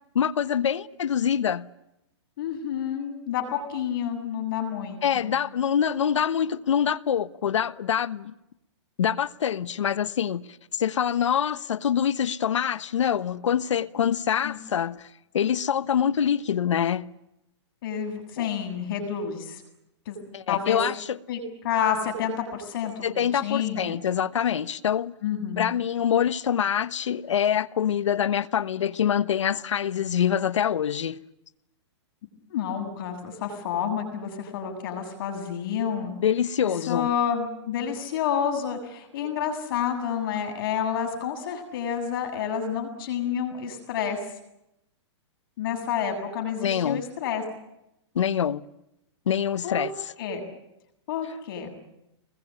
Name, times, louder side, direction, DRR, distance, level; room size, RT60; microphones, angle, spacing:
voice 1, 0.1-1.7 5.0-8.3 9.0-17.1 18.4-18.5 20.3-21.2 23.0-25.1 25.6-31.2 36.2-37.1 46.6-47.0 48.1-48.6 49.3-49.9, left 8 dB, 85° left, 1.2 m, -25 dB
voice 2, 2.4-5.3 14.4-14.6 17.8-19.6 20.1-20.2 20.5-20.8 21.3-24.0 25.2-25.7 32.5-36.1 36.9-44.2 45.6-47.4 49.6-49.9 50.2-50.4 51.1-51.7, left 8 dB, 50° left, 7.9 m, -29 dB
25.5 x 21.5 x 9.8 m
hypercardioid pair, 155°, 15 cm